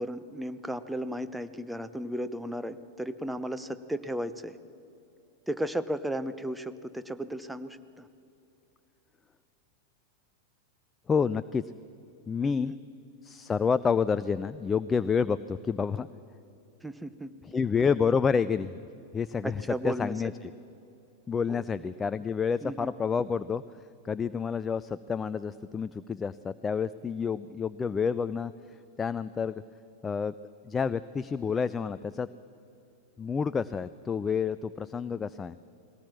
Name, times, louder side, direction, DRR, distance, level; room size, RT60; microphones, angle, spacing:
voice 1, 0.0-4.6 5.5-8.0 12.6-12.8 16.8-17.3 19.4-20.1 21.5-21.6 22.6-22.9, right 1 dB, 5° right, 11 dB, 0.8 m, -35 dB
voice 2, 11.1-11.6 12.3-12.7 13.2-16.1 17.4-18.8 19.1-20.3 21.3-23.6 24.0-28.5 29.0-29.6 30.0-30.3 30.7-32.3 33.2-35.6, left 6 dB, 15° left, 15 dB, 0.4 m, -29 dB
20.0 x 18.0 x 7.2 m, 2.7 s
figure-of-eight pair, 90°, 0 cm